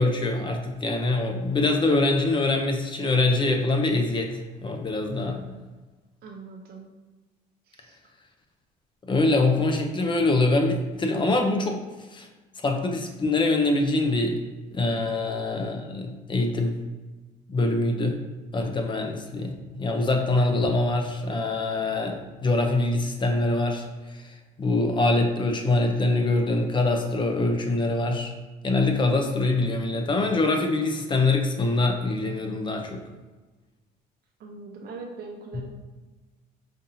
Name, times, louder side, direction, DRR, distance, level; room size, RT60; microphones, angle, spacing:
voice 1, 0.0-5.4 9.1-11.8 12.1-12.3 12.6-14.4 14.7-16.8 17.5-18.2 18.5-28.3 28.6-33.0, left 2 dB, 30° left, 3 dB, 0.6 m, -24 dB
voice 2, 5.1-5.8 6.2-6.9 7.7-8.0 34.4-35.7, right 3 dB, 65° right, 2 dB, 0.8 m, -42 dB
5.2 x 2.7 x 2.7 m, 1.2 s
cardioid pair, 110°, 17 cm